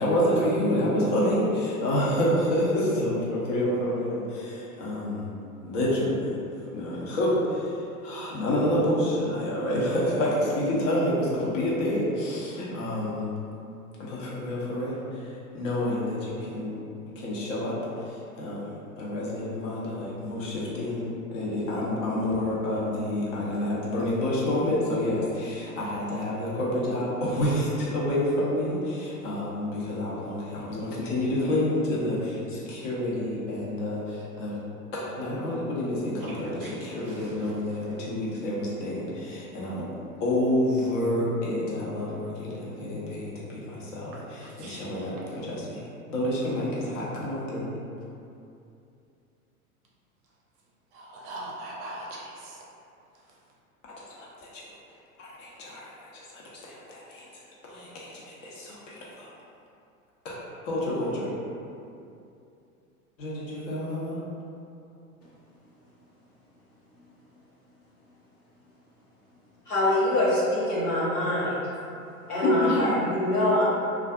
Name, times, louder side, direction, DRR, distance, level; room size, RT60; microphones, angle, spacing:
voice 1, 0.0-5.3 5.6-6.3 6.7-13.2 14.0-15.2 15.5-16.8 17.2-34.6 34.9-39.9 40.2-47.7 54.0-54.1 54.4-54.6 55.2-57.3 57.6-59.3 60.2-60.3 60.6-61.3 63.2-64.2 72.4-72.7, left 1 dB, 55° left, -6 dB, 0.8 m, -28 dB
voice 2, 36.3-37.5 44.6-44.8 50.9-52.5, right 1 dB, 40° right, -4 dB, 0.5 m, -41 dB
voice 3, 69.7-71.6 72.3-73.6, left 1 dB, 85° left, -9 dB, 1.0 m, -24 dB
2.5 x 2.3 x 2.3 m, 2.6 s
figure-of-eight pair, 90°, 44 cm